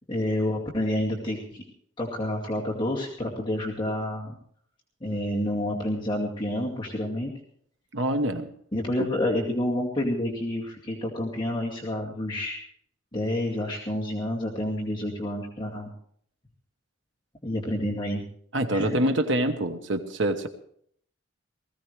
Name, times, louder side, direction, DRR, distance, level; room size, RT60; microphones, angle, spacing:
voice 1, 0.1-1.6 2.0-4.3 5.0-7.3 8.7-12.6 13.1-15.9 17.4-18.2 18.7-18.9, left 1 dB, 25° left, -4 dB, 2.3 m, -29 dB
voice 2, 7.9-8.5 9.0-9.1 18.5-20.5, right 1 dB, 65° right, 7 dB, 1.1 m, -25 dB
20.0 x 16.0 x 3.3 m, 0.64 s
head